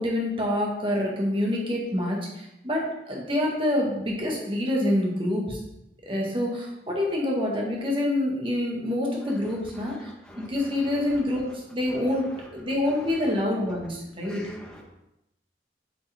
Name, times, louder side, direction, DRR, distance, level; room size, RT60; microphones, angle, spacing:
voice 1, 0.0-5.6 6.0-10.1 10.4-14.5, left 1 dB, 30° right, -2 dB, 1.6 m, -27 dB
voice 2, 9.8-10.5 14.2-14.8, left 1 dB, 5° left, -1 dB, 1.2 m, -46 dB
8.5 x 5.0 x 3.5 m, 0.88 s
head